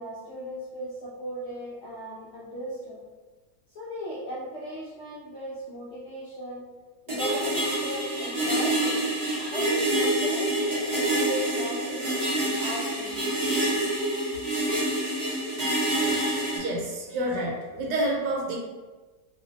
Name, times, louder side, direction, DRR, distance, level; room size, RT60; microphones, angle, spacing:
voice 1, 0.0-3.0 3.7-6.6 7.1-9.0 9.4-13.2, right 1 dB, 65° left, -8 dB, 0.6 m, -37 dB
sound 1, 7.1-16.6, right 1 dB, 45° right, 0.6 m, -27 dB
voice 2, 16.6-18.5, right 1 dB, 85° right, -2 dB, 1.3 m, -28 dB
2.6 x 2.4 x 2.5 m, 1.3 s
omnidirectional pair, 1.8 m